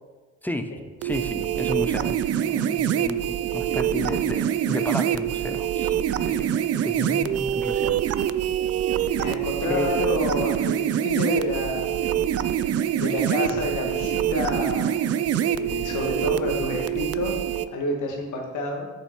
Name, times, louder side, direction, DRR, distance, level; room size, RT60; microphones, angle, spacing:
voice 1, 0.4-0.7 1.0-8.0 9.1-9.2 9.7-9.9, left 1 dB, 5° left, 7 dB, 0.6 m, -33 dB
sound 1, 1.0-17.7, right 10 dB, 55° right, 0.4 m, -25 dB
voice 2, 9.2-12.1 12.9-15.2 15.6-17.4 17.7-18.9, left 3 dB, 75° left, 1 dB, 1.7 m, -29 dB
7.6 x 5.7 x 4.5 m, 1.2 s
cardioid pair, 90°, 30 cm